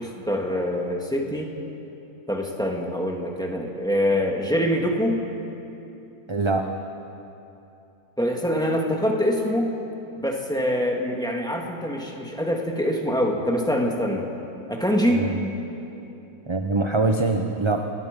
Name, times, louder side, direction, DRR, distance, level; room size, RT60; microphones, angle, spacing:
voice 1, 0.0-1.5 2.3-5.2 8.2-9.7 10.2-14.3 14.7-15.2, equal, 5° left, 0 dB, 2.3 m, -24 dB
voice 2, 6.3-6.7 15.1-15.3 16.5-17.9, right 3 dB, 25° right, 4 dB, 0.8 m, -23 dB
29.5 x 20.5 x 5.4 m, 2.9 s
omnidirectional pair, 1.6 m